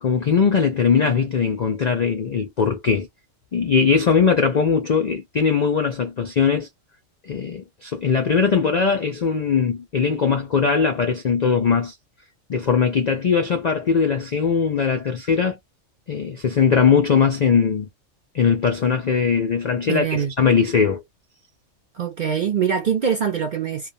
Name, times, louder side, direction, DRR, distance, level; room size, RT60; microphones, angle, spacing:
voice 1, 0.0-3.1 3.5-6.7 7.2-11.9 12.5-15.6 16.1-17.9 18.3-21.0, left 6 dB, 80° left, 0.3 m, -20 dB
voice 2, 19.9-20.3 22.0-23.9, right 7 dB, 60° right, 0.5 m, -23 dB
2.3 x 2.2 x 2.5 m
omnidirectional pair, 1.4 m